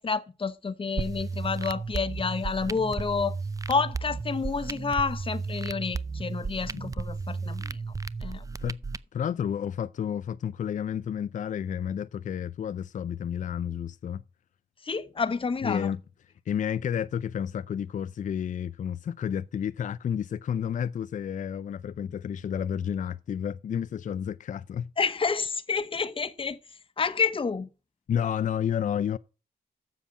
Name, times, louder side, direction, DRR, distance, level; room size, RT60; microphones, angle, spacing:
voice 1, 0.0-3.4 3.7-7.8 8.2-8.4 14.8-15.9 25.0-26.6 27.0-27.7, left 5 dB, 35° left, 0.9 m, -29 dB
sound 1, 1.0-9.0, right 4 dB, 20° right, 0.5 m, -34 dB
voice 2, 9.1-14.2 15.6-16.0 16.5-24.9 28.1-29.2, left 8 dB, 50° left, 0.4 m, -31 dB
7.4 x 7.0 x 7.1 m
cardioid pair, 65°, 16 cm